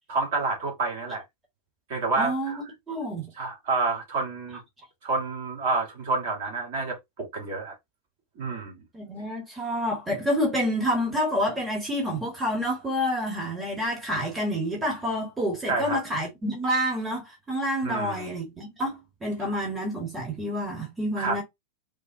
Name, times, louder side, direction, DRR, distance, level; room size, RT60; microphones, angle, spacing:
voice 1, 0.1-1.2 1.9-2.6 3.3-4.6 5.0-7.7 8.4-8.8 15.7-16.0 17.8-18.3 21.2-21.4, right 3 dB, 55° right, 1.6 m, -29 dB
voice 2, 2.2-2.5 2.9-3.3 8.9-21.4, equal, 15° right, 1.1 m, -28 dB
3.6 x 2.0 x 2.6 m
figure-of-eight pair, 90°, 0 cm